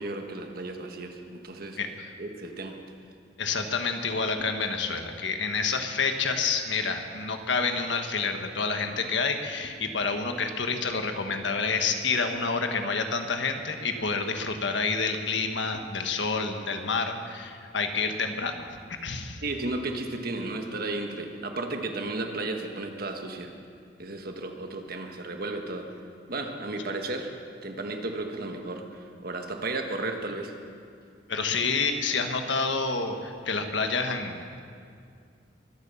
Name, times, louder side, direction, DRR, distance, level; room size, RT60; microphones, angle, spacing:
voice 1, 0.0-1.8 2.2-2.8 19.4-23.5 24.0-25.9 26.3-27.3 27.6-28.9 29.2-30.5, right 2 dB, 55° right, 4 dB, 1.5 m, -34 dB
voice 2, 1.8-2.1 3.4-19.4 31.3-34.6, left 4 dB, 90° left, 5 dB, 1.4 m, -28 dB
23.5 x 8.8 x 7.0 m, 2.3 s
head